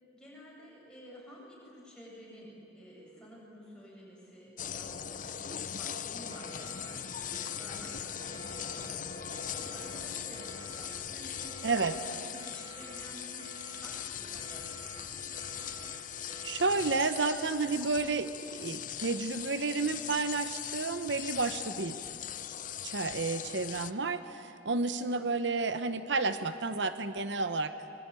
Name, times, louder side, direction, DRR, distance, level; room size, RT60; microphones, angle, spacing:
voice 1, 0.1-15.6 25.0-25.2, equal, 5° left, -5 dB, 8.0 m, -52 dB
sound 1, 4.6-23.9, left 9 dB, 45° left, 0.7 m, -40 dB
sound 2, 6.3-17.1, right 2 dB, 25° right, 2.2 m, -50 dB
voice 2, 11.6-12.0 16.4-22.0 22.8-27.7, right 3 dB, 75° right, 10 dB, 1.0 m, -31 dB
24.5 x 22.0 x 9.8 m, 2.7 s
head